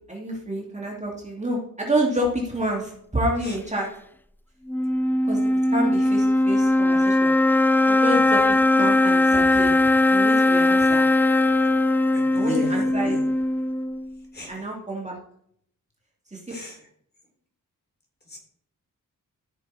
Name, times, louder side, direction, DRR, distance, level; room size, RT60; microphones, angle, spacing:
voice 1, 0.1-3.9 5.3-7.3 7.8-8.4 8.8-9.7 10.0-11.0 12.3-13.2 14.5-15.2 16.3-16.4, right 1 dB, 20° right, -2 dB, 2.6 m, -28 dB
sound 1, 4.7-14.1, left 2 dB, 5° left, 0.4 m, -20 dB
voice 2, 12.1-12.7 13.1-13.3 14.3-14.5 16.5-16.8 18.3-18.4, left 2 dB, 30° left, 1 dB, 3.7 m, -35 dB
14.0 x 6.4 x 4.3 m, 0.67 s
cardioid pair, 90°, 34 cm